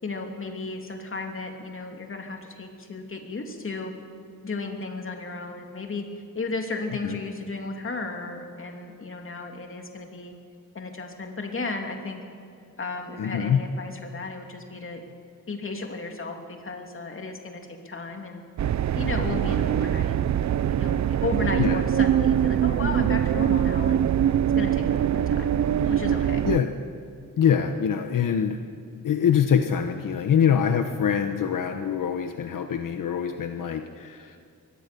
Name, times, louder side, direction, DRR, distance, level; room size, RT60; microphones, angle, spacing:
voice 1, 0.0-3.9 4.4-6.0 6.3-10.3 10.7-12.2 12.8-15.0 15.5-18.4 18.9-20.2 20.7-24.0 24.5-25.5 25.9-26.4, left 3 dB, 40° left, 3 dB, 2.9 m, -34 dB
voice 2, 13.2-13.6 21.6-21.8 26.4-26.7 27.4-28.6 29.0-34.4, left 8 dB, 75° left, 7 dB, 1.1 m, -24 dB
sound 1, 18.6-26.6, right 10 dB, 60° right, 0.6 m, -23 dB
22.5 x 18.0 x 6.9 m, 2.4 s
wide cardioid pair, 110°, 32 cm